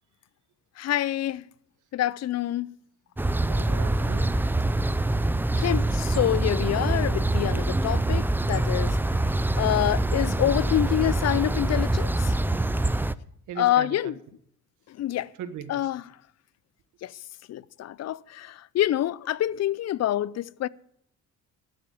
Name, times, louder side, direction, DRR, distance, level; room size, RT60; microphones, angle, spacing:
voice 1, 0.8-1.4 1.9-2.7 5.6-9.0 9.5-12.3 13.6-14.1 15.0-15.3 15.7-16.0 17.0-17.1 17.5-20.7, left 12 dB, 60° left, 0.5 m, -26 dB
sound 1, 3.2-13.1, right 2 dB, 5° right, 0.4 m, -25 dB
voice 2, 3.5-4.3 13.5-14.2 15.3-15.9, right 9 dB, 80° right, 1.5 m, -38 dB
12.0 x 7.8 x 8.4 m
cardioid pair, 90°, 30 cm